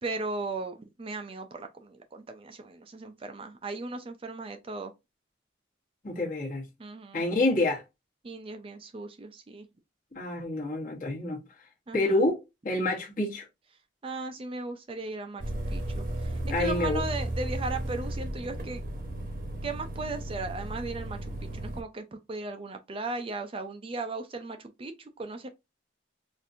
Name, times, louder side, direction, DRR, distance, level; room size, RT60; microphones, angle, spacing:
voice 1, 0.0-4.9 6.8-7.2 8.2-9.7 11.9-12.2 14.0-18.8 19.6-25.5, right 3 dB, 30° right, 0.4 m, -37 dB
voice 2, 6.0-6.6 7.1-7.8 10.1-11.4 11.9-13.5 16.4-17.0, left 2 dB, 45° left, 1.0 m, -28 dB
sound 1, 15.4-21.8, right 1 dB, 50° right, 0.9 m, -34 dB
4.3 x 2.6 x 2.5 m
head